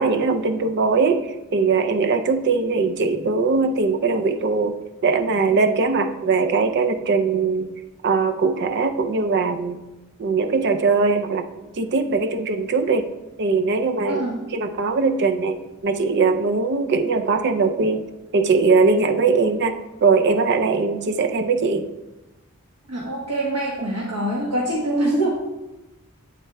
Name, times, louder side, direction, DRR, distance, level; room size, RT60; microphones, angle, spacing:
voice 1, 0.0-7.7 8.0-9.8 10.2-11.5 11.7-13.1 13.4-14.2 14.5-15.6 15.8-18.0 18.3-21.9, right 4 dB, 50° right, 7 dB, 0.4 m, -20 dB
voice 2, 14.1-14.4 22.9-25.3, right 1 dB, 80° right, -3 dB, 1.1 m, -24 dB
8.5 x 7.9 x 2.2 m, 1.0 s
head